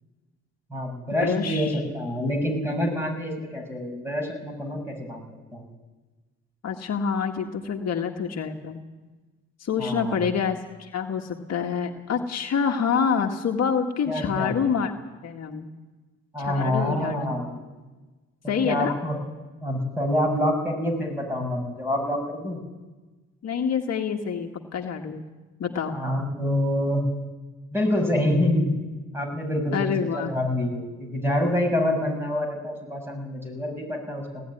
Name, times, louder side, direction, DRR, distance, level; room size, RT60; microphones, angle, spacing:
voice 1, 0.7-5.2 5.5-5.6 9.8-10.3 14.1-14.5 16.3-17.6 18.4-19.2 19.6-22.6 25.9-27.0 27.7-28.7 29.1-34.4, left 1 dB, 10° right, 2 dB, 6.8 m, -26 dB
voice 2, 1.2-1.8 6.6-8.8 9.6-14.9 15.2-15.7 16.4-17.2 18.5-18.9 23.4-25.2 25.6-26.0 29.7-30.3, left 6 dB, 55° left, 2 dB, 1.8 m, -27 dB
18.5 x 14.5 x 9.9 m, 1.2 s
cardioid pair, 90°, 30 cm